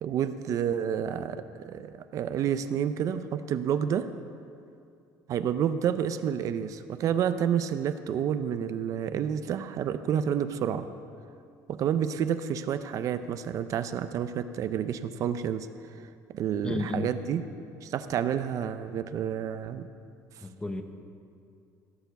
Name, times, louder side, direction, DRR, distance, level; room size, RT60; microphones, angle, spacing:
voice 1, 0.0-4.1 5.3-10.9 11.7-15.7 16.3-17.4 17.8-19.9, right 8 dB, 50° right, 11 dB, 0.5 m, -29 dB
voice 2, 16.6-17.1 20.4-20.8, left 2 dB, 10° left, 6 dB, 0.9 m, -32 dB
16.0 x 7.0 x 6.9 m, 2.5 s
cardioid pair, 145°, 7 cm